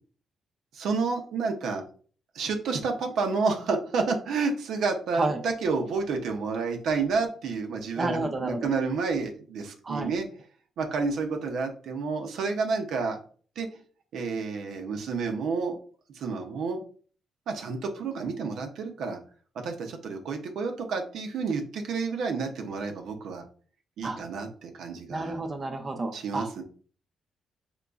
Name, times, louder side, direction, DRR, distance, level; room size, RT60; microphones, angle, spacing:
voice 1, 0.7-1.8 2.3-10.3 10.8-13.2 13.6-13.7 14.1-15.8 16.1-16.8 17.5-19.2 19.6-23.4 24.0-25.4 26.1-26.6, right 4 dB, 80° right, 4 dB, 0.6 m, -30 dB
voice 2, 8.0-8.7 9.8-10.1 24.0-24.2 25.1-26.5, right 2 dB, 25° right, 4 dB, 0.5 m, -30 dB
3.9 x 2.9 x 2.3 m, 0.42 s
cardioid pair, 135°, 0 cm